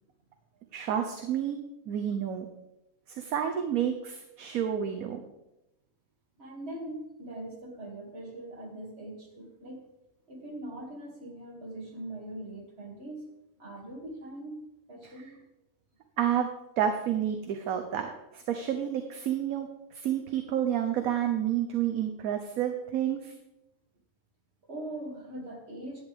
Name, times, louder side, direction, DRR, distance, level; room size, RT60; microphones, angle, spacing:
voice 1, 0.7-1.6 1.9-2.5 3.1-5.2 16.2-16.5 16.8-19.7 19.9-23.3, right 9 dB, 70° right, 5 dB, 1.2 m, -30 dB
voice 2, 6.4-9.9 10.3-13.3 13.6-15.5 24.6-26.0, right 1 dB, 40° right, -3 dB, 2.5 m, -41 dB
11.0 x 9.1 x 3.5 m, 0.92 s
omnidirectional pair, 1.7 m